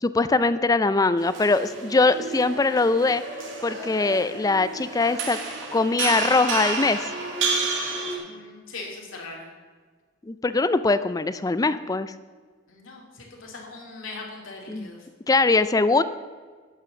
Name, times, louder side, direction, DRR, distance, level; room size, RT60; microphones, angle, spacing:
voice 1, 0.0-3.2 3.6-5.4 5.7-7.1 10.2-12.1 14.7-14.9 15.3-16.0, left 3 dB, 20° left, 13 dB, 0.4 m, -22 dB
sound 1, 1.2-8.2, right 3 dB, 75° right, 2.0 m, -30 dB
voice 2, 8.2-9.5 12.7-15.0, left 3 dB, 90° left, -2 dB, 2.7 m, -40 dB
11.5 x 5.8 x 6.8 m, 1.5 s
head